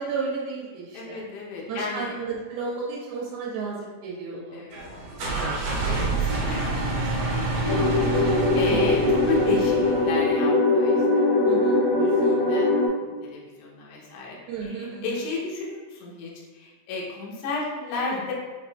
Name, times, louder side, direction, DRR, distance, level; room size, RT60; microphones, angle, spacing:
voice 1, 0.0-1.3 1.7-4.6 8.6-9.0 11.5-11.8 14.5-15.2 18.1-18.2, right 4 dB, 90° right, -5 dB, 2.4 m, -33 dB
voice 2, 0.9-2.1 4.5-7.8 8.1-11.2 11.7-18.3, left 3 dB, 90° left, -4 dB, 1.4 m, -34 dB
sound 1, 4.7-10.3, right 2 dB, 70° right, 1.4 m, -28 dB
sound 2, 7.7-12.9, left 2 dB, 70° left, 1.3 m, -21 dB
6.2 x 2.5 x 2.3 m, 1.4 s
omnidirectional pair, 4.0 m